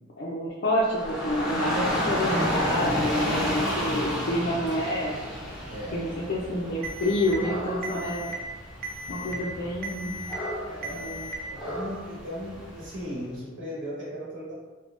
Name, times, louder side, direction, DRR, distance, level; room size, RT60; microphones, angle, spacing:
voice 1, 0.2-5.2 5.9-8.3 9.1-10.2 10.9-11.3, left 1 dB, 50° left, -6 dB, 0.4 m, -28 dB
Dog / Rain, 0.8-13.0, left 1 dB, ahead, 0.6 m, -31 dB
voice 2, 5.7-6.0 10.6-14.5, equal, 70° right, -7 dB, 1.1 m, -38 dB
Alarm, 6.8-7.3 7.8-8.3 8.8-9.3 9.8-10.3 10.8-11.3, equal, 45° right, 0.3 m, -37 dB
3.5 x 2.1 x 2.4 m, 1.3 s
head